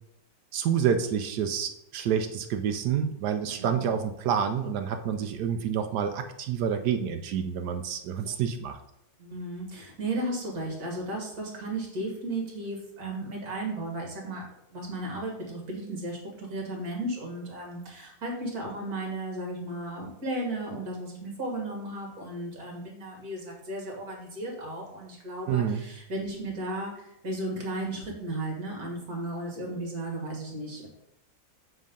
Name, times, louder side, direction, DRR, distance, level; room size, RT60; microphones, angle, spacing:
voice 1, 0.5-8.8 25.5-25.8, right 8 dB, 70° right, 7 dB, 1.1 m, -28 dB
voice 2, 9.2-14.5 14.7-30.9, right 1 dB, 50° right, -1 dB, 2.4 m, -35 dB
7.8 x 3.6 x 5.3 m, 0.82 s
omnidirectional pair, 2.1 m